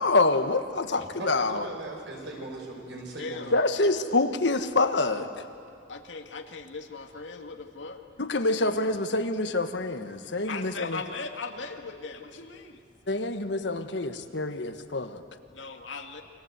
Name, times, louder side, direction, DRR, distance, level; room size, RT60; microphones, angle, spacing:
voice 1, 0.0-1.6 3.5-5.3 8.2-11.0 13.1-15.2, left 2 dB, 70° left, 8 dB, 1.5 m, -26 dB
voice 2, 0.9-3.5, right 2 dB, 70° right, 0 dB, 6.6 m, -39 dB
voice 3, 3.2-3.6 5.9-8.0 10.5-12.8 15.5-16.2, left 4 dB, 85° left, 4 dB, 2.2 m, -39 dB
29.5 x 24.5 x 8.2 m, 2.6 s
head